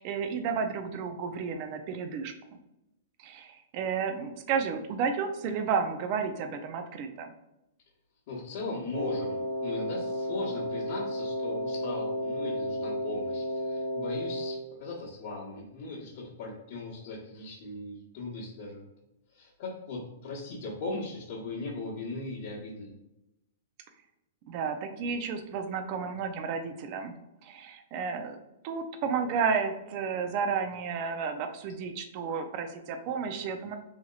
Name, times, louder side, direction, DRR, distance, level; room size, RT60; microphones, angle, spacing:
voice 1, 0.0-2.3 3.2-7.3 24.5-27.1 27.4-28.4 28.6-33.8, right 6 dB, 40° right, 7 dB, 0.4 m, -32 dB
voice 2, 8.3-18.9 19.3-22.9, left 3 dB, 50° left, -8 dB, 1.0 m, -38 dB
Wind instrument woodwind instrument, 8.9-14.7, left 1 dB, 70° right, 0.7 m, -33 dB
2.8 x 2.8 x 2.3 m, 0.92 s
hypercardioid pair, 140°, 0 cm